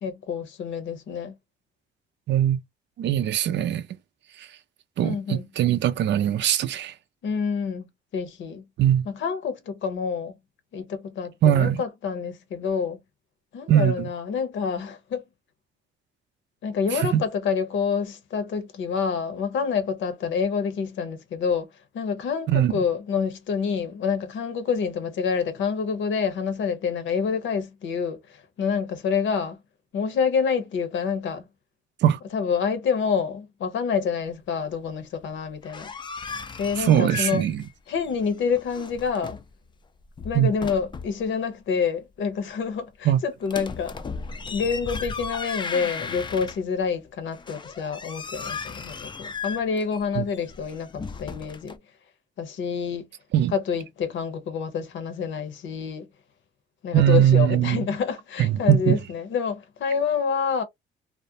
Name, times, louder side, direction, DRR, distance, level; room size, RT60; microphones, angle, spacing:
voice 1, 0.0-1.3 5.0-5.4 7.2-7.9 8.1-8.6 9.0-10.3 10.7-13.0 13.5-15.2 16.6-21.7 21.9-29.6 29.9-31.5 32.3-35.9 36.6-37.4 37.9-39.4 40.2-44.0 44.5-51.8 52.4-53.1 53.5-56.0 56.8-60.6, left 6 dB, 70° left, 0.8 m, -27 dB
voice 2, 2.3-2.6 3.0-3.8 4.4-4.5 5.0-6.9 8.8-9.1 11.4-11.8 13.7-13.9 16.9-17.2 22.5-22.7 32.0-32.2 36.8-37.6 40.3-40.5 43.1-43.2 50.2-50.3 53.3-53.5 56.9-57.9 58.4-59.0, right 11 dB, 65° right, 0.5 m, -21 dB
sound 1, 35.5-37.7 38.0-39.5 40.0-41.2 43.4-46.9 47.3-51.8, left 5 dB, 25° left, 0.4 m, -36 dB
2.4 x 2.1 x 2.7 m
cardioid pair, 90°, 20 cm